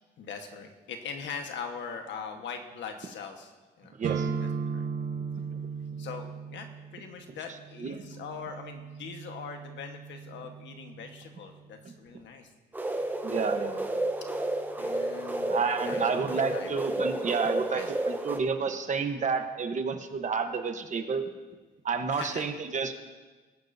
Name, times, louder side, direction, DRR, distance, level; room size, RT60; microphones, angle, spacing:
voice 1, 0.2-3.5 3.8-3.9 4.4-5.2 6.0-12.5 14.8-15.6 15.8-16.7 17.7-17.9 22.1-22.5, left 6 dB, 85° left, 4 dB, 1.4 m, -41 dB
voice 2, 3.9-4.3 5.5-5.6 7.8-8.0 13.2-13.9 15.4-21.2 21.8-22.9, right 5 dB, 40° right, 6 dB, 1.1 m, -30 dB
sound 1, 4.0-11.8, right 5 dB, 90° right, 1.1 m, -37 dB
sound 2, 12.7-18.4, right 1 dB, 10° right, 0.9 m, -31 dB
21.0 x 10.0 x 2.7 m, 1.3 s
cardioid pair, 120°, 18 cm